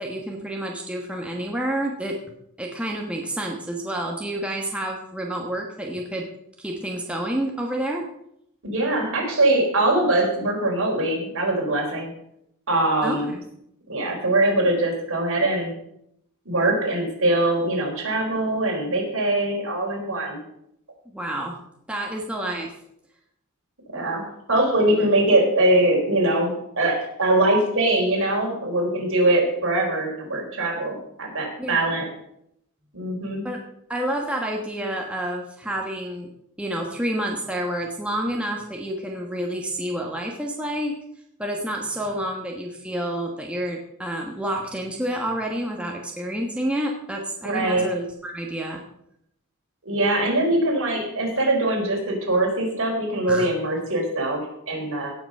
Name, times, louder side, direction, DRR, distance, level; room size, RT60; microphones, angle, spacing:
voice 1, 0.0-2.2 2.6-6.3 6.6-8.1 13.0-13.4 21.1-21.6 21.9-22.7 31.6-31.9 33.4-33.6 33.9-36.3 36.6-41.0 41.4-48.8 53.3-53.4, right 1 dB, 5° right, -1 dB, 1.2 m, -29 dB
voice 2, 8.6-12.1 12.7-13.3 13.9-15.7 16.4-20.4 23.9-32.1 32.9-33.5 47.4-47.9 49.8-55.1, right 1 dB, 60° right, -1 dB, 4.2 m, -22 dB
17.5 x 6.1 x 5.4 m, 0.76 s
head